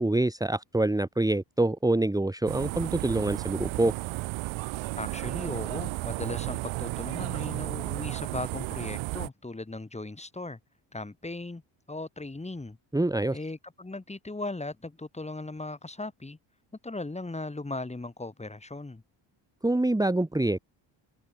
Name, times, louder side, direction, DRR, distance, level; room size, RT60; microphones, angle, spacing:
voice 1, 0.0-3.9 12.9-13.4 19.6-20.6, right 2 dB, 10° right, 2.0 m, -26 dB
sound 1, 2.5-9.3, right 20 dB, 85° right, 1.2 m, -33 dB
voice 2, 5.0-10.6 10.9-11.6 11.9-12.8 13.3-16.4 16.8-19.0, left 2 dB, 15° left, 3.5 m, -37 dB
cardioid pair, 90°, 46 cm